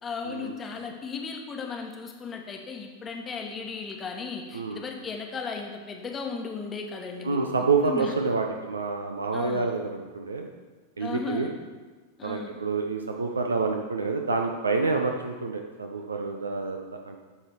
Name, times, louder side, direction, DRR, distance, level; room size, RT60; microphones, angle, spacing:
voice 1, 0.0-8.1 9.3-9.7 11.0-11.5 12.2-12.6, left 5 dB, 20° left, 2 dB, 1.1 m, -36 dB
voice 2, 7.2-10.5 11.0-11.5 12.2-17.2, right 4 dB, 75° right, 3 dB, 0.6 m, -28 dB
11.5 x 3.9 x 4.6 m, 1.3 s
figure-of-eight pair, 90°, 0 cm